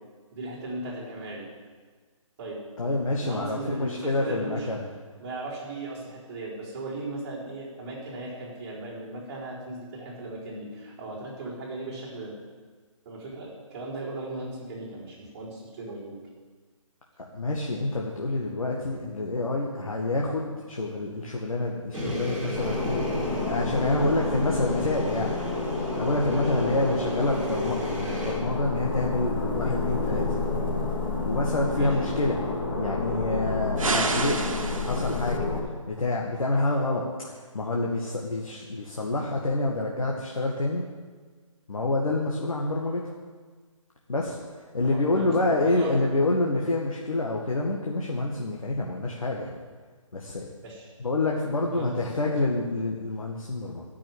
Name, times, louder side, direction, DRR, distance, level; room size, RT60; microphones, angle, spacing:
voice 1, 0.3-1.5 2.4-2.6 2.9-4.7 5.2-12.3 13.0-16.2 23.9-24.1 26.3-26.5 31.7-32.0 44.9-45.9 50.6-50.9 51.7-52.0, right 2 dB, 25° right, -7 dB, 4.2 m, -37 dB
voice 2, 2.8-4.9 17.3-23.0 23.5-25.3 26.0-30.4 31.3-32.4 32.7-35.5 35.9-37.1 37.5-40.8 41.7-43.1 44.1-44.4 44.7-49.6 50.1-50.5 51.0-53.8, left 2 dB, 85° left, -1 dB, 1.9 m, -27 dB
sound 1, 21.9-28.3, left 1 dB, 5° right, 2.8 m, -34 dB
sound 2, 22.5-35.6, left 3 dB, 40° left, 2.4 m, -29 dB
sound 3, 33.8-35.4, right 3 dB, 75° right, 1.6 m, -29 dB
13.0 x 6.2 x 9.3 m, 1.5 s
hypercardioid pair, 155°, 17 cm